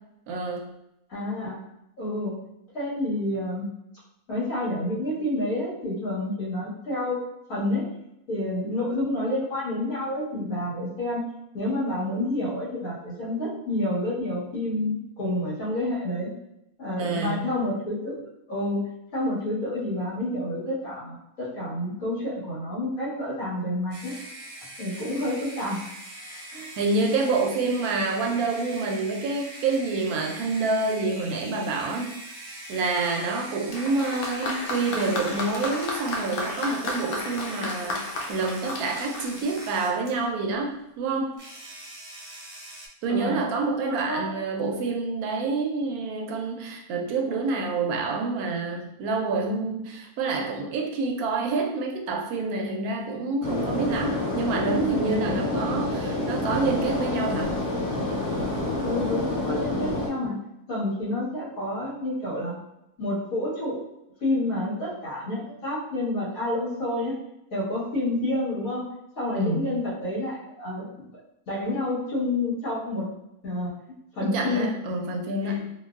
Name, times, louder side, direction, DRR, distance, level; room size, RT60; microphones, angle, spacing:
voice 1, 0.3-0.7 17.0-17.5 26.8-32.1 32.7-41.3 43.0-57.6 69.3-69.6 74.2-75.7, right 3 dB, 75° right, 1 dB, 1.0 m, -27 dB
voice 2, 1.1-1.6 2.0-2.4 2.7-3.7 4.3-7.2 7.5-7.8 8.3-11.2 11.5-16.3 16.8-18.2 18.5-18.8 19.1-24.2 24.8-25.8 26.5-26.7 43.1-43.5 43.8-44.4 58.8-60.4 60.7-62.6 63.0-63.8 64.2-67.2 67.5-68.8 69.2-71.1 71.5-73.1 73.4-73.7 74.1-74.7 75.4-75.6, left 1 dB, 60° left, -9 dB, 1.9 m, -29 dB
sound 1, 23.9-40.2 41.3-42.9, right 1 dB, 50° right, 0.8 m, -43 dB
Applause, 33.7-40.2 41.1-41.2, left 2 dB, 75° left, 1.1 m, -33 dB
sound 2, 53.4-60.1, left 2 dB, 15° left, 0.8 m, -28 dB
3.8 x 2.3 x 2.4 m, 0.86 s
omnidirectional pair, 1.6 m